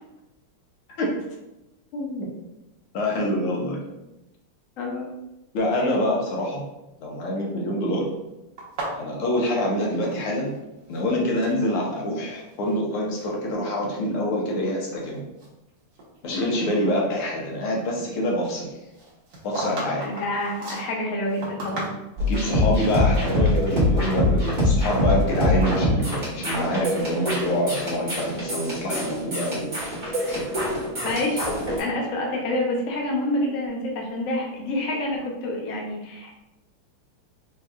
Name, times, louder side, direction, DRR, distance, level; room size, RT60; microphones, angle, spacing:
voice 1, 1.9-2.3 2.9-3.8 5.5-6.6 7.0-8.0 9.0-10.5 10.9-15.2 16.2-18.7 19.4-20.1 22.3-29.7 30.3-30.4, left 1 dB, 80° left, -2 dB, 1.8 m, -26 dB
voice 2, 4.8-5.1 20.0-21.9 30.2-30.4 31.0-31.5 31.8-36.4, left 1 dB, 60° left, -1 dB, 0.8 m, -28 dB
sound 1, 8.6-10.6 10.8-11.6 12.2-12.8 13.1-13.4 14.0-14.1 14.7-16.2 16.5-16.6 18.9-22.4, right 2 dB, 55° right, 1.6 m, -36 dB
sound 2, 22.2-31.8, left 1 dB, 25° right, 1.2 m, -24 dB
4.8 x 3.2 x 2.4 m, 0.95 s
omnidirectional pair, 2.4 m